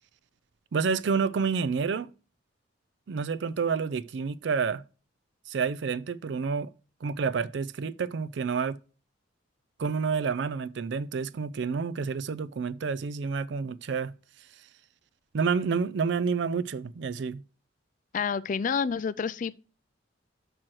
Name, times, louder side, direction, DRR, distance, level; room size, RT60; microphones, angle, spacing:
voice 1, 0.7-2.1 3.1-4.8 5.5-6.7 7.0-8.8 9.8-14.1 15.3-17.4, right 5 dB, 60° right, 0.4 m, -29 dB
voice 2, 18.1-19.6, left 6 dB, 40° left, 0.3 m, -29 dB
6.2 x 4.5 x 6.1 m
head